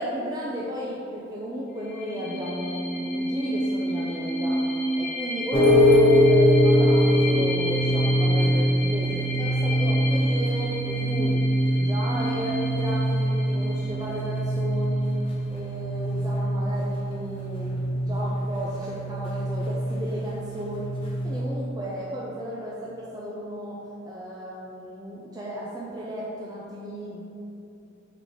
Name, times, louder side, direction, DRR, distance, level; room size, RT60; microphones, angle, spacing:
voice 1, 0.0-4.6 5.0-11.4 11.8-15.2 15.5-21.0 21.2-23.8 24.0-27.2, equal, 20° right, -6 dB, 0.5 m, -34 dB
sound 1, 1.8-15.2, equal, 60° left, 0.8 m, -31 dB
sound 2, 5.5-21.4, equal, 30° left, 0.8 m, -23 dB
4.9 x 3.9 x 5.0 m, 2.8 s
head